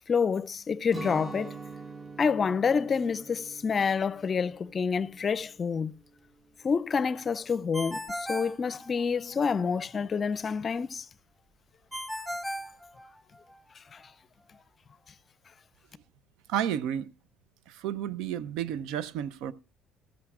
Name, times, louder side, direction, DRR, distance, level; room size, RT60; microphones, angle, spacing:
voice 1, 0.0-1.6 2.2-5.9 6.6-11.1 13.9-14.0, left 6 dB, 40° left, 0.5 m, -28 dB
Guitar, 0.9-6.7, right 4 dB, 35° right, 1.5 m, -45 dB
Ringtone, 7.7-9.4 11.9-13.5, equal, 10° right, 2.0 m, -37 dB
voice 2, 16.5-17.1 17.7-19.5, right 10 dB, 75° right, 0.6 m, -31 dB
14.0 x 13.5 x 2.4 m
hypercardioid pair, 70°, 0 cm